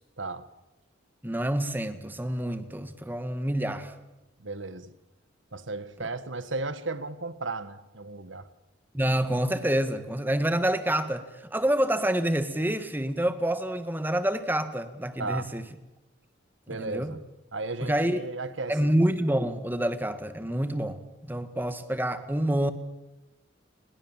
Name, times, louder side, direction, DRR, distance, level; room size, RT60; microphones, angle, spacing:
voice 1, 0.2-0.5 4.4-4.9 5.5-8.5 15.2-15.5 16.7-17.2 17.5-18.9, right 3 dB, 80° right, 1.6 m, -35 dB
voice 2, 1.2-3.9 8.9-15.6 16.7-17.1 17.8-18.2 18.7-21.0 21.3-22.7, right 1 dB, 10° right, 1.6 m, -27 dB
29.5 x 21.0 x 7.4 m
head